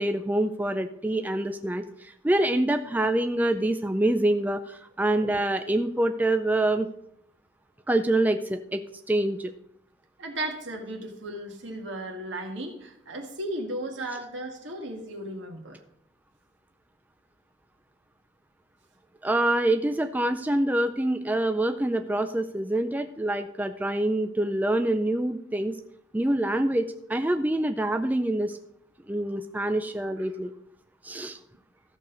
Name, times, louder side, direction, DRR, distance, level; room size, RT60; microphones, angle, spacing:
voice 1, 0.0-6.9 7.9-8.8 9.1-9.5 19.2-25.8 26.1-28.6 29.1-30.5 31.0-31.4, right 1 dB, 10° right, 8 dB, 0.4 m, -26 dB
voice 2, 10.2-15.8 30.2-30.3, right 1 dB, 80° right, 2 dB, 1.9 m, -35 dB
14.0 x 6.5 x 3.9 m, 0.73 s
head